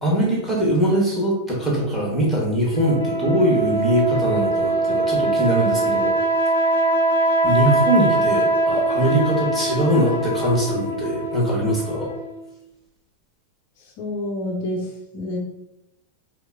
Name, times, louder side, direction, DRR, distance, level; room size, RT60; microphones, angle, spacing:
voice 1, 0.0-6.2 7.4-12.1, right 1 dB, 5° right, -5 dB, 1.5 m, -21 dB
sound 1, 2.7-12.4, right 2 dB, 80° left, 0.7 m, -22 dB
voice 2, 13.8-15.4, left 1 dB, 45° left, -1 dB, 0.7 m, -29 dB
4.5 x 2.1 x 3.6 m, 0.88 s
figure-of-eight pair, 90°, 0 cm